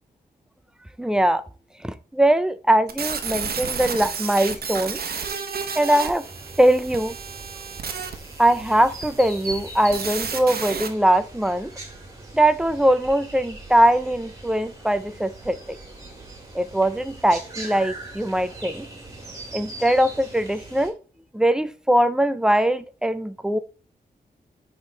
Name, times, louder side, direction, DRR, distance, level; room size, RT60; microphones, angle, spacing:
voice 1, 1.0-1.4 1.8-5.0 5.8-6.2 6.6-7.2 8.4-11.7 12.3-15.8 16.5-18.9 19.5-20.9 21.3-23.6, right 1 dB, 5° right, 13 dB, 0.4 m, -21 dB
sound 1, 2.9-10.9, right 6 dB, 70° right, 1.0 m, -32 dB
sound 2, 6.2-20.9, right 2 dB, 20° right, 2.1 m, -40 dB
9.1 x 3.6 x 3.9 m, 0.37 s
wide cardioid pair, 135°, 17 cm